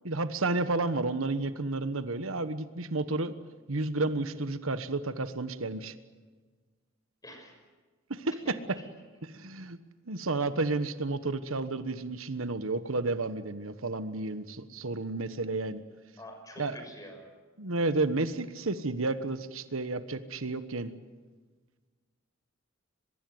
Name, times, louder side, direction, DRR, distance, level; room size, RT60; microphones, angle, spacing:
voice 1, 0.0-3.3 3.7-5.9 8.1-8.8 9.3-9.8 10.1-15.8 16.6-16.8 17.6-20.9, right 3 dB, 85° right, 12 dB, 1.3 m, -31 dB
voice 2, 7.2-7.5 8.4-8.8 16.2-17.3, equal, 15° left, 4 dB, 6.2 m, -47 dB
23.0 x 22.5 x 7.9 m, 1.4 s
head